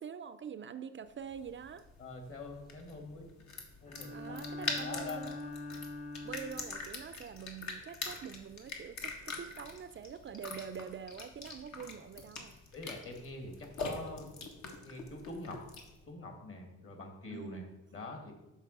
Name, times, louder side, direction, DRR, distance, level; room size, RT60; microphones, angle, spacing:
voice 1, 0.0-1.9 4.1-5.5 6.2-12.5 17.3-17.8, right 7 dB, 40° right, 12 dB, 0.5 m, -45 dB
sound 1, 1.2-16.0, left 3 dB, 65° left, 1.9 m, -44 dB
voice 2, 2.0-3.3 3.8-5.4 12.7-14.3 14.8-15.6 16.1-17.6 17.9-18.3, left 2 dB, 45° left, 3 dB, 2.3 m, -45 dB
Bowed string instrument, 3.9-7.0, left 2 dB, 25° left, 1.0 m, -43 dB
7.4 x 5.1 x 6.7 m, 1.0 s
cardioid pair, 90°, 30 cm